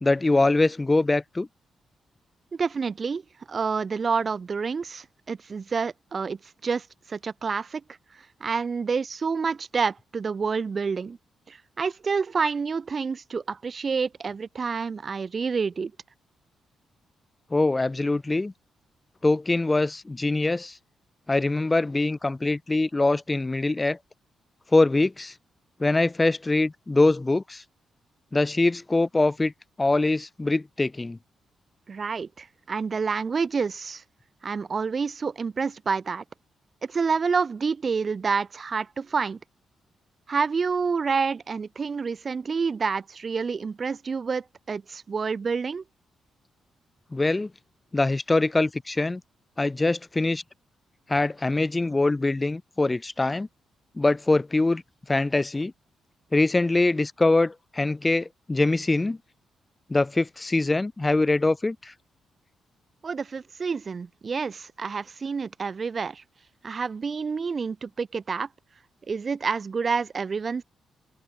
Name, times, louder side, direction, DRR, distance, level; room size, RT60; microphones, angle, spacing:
voice 1, 0.0-1.5 17.5-18.5 19.2-20.7 21.3-24.0 24.7-25.3 25.8-27.6 28.3-29.5 29.8-31.2 47.1-47.5 47.9-49.2 49.6-50.4 51.1-53.5 54.0-54.8 55.1-55.7 56.3-59.2 59.9-61.9, left 2 dB, 25° left, 0.5 m, -23 dB
voice 2, 2.6-3.2 3.5-7.8 8.4-11.2 11.5-15.9 31.9-34.0 34.4-36.2 36.8-39.4 40.3-45.8 63.0-66.2 66.6-68.5 69.1-70.6, right 5 dB, 45° right, 0.6 m, -28 dB
open air
supercardioid pair, 50°, 0 cm